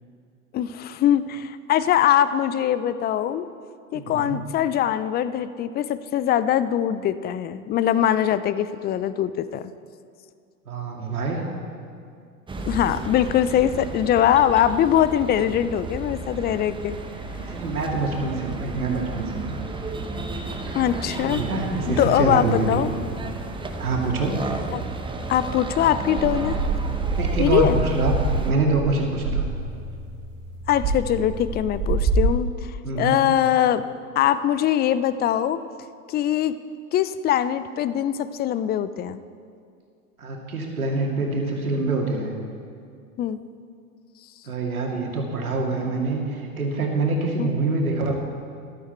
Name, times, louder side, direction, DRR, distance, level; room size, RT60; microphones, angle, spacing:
voice 1, 0.5-3.5 3.9-9.7 12.7-17.0 20.7-21.4 21.9-22.9 24.7-24.8 25.3-26.6 27.4-27.8 30.7-33.8 34.2-35.6 36.1-36.5 36.9-39.2 43.2-43.4 47.4-47.5, left 10 dB, 25° left, 14 dB, 0.4 m, -22 dB
voice 2, 3.9-4.4 10.7-11.4 17.4-19.5 20.7-20.9 21.2-22.9 23.8-24.4 27.1-28.1 28.4-29.5 32.8-33.2 40.2-42.3 44.5-48.1, right 3 dB, 85° right, 0 dB, 2.2 m, -25 dB
sound 1, 12.5-28.5, right 3 dB, 10° right, 1.0 m, -33 dB
sound 2, 26.2-32.2, right 3 dB, 45° right, 3.0 m, -26 dB
13.5 x 12.0 x 4.5 m, 2.3 s
hypercardioid pair, 85°, 42 cm